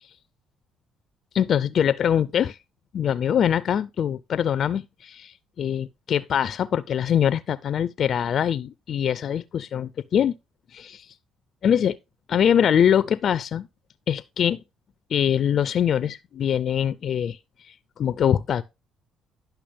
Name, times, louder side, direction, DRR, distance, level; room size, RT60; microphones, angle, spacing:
voice 1, 1.3-2.6 2.9-10.3 10.7-11.1 11.6-12.0 12.3-13.7 14.1-14.6 15.1-17.4 17.7-18.6, left 9 dB, 55° left, 0.4 m, -23 dB
10.0 x 5.8 x 3.3 m
cardioid pair, 85°, 0 cm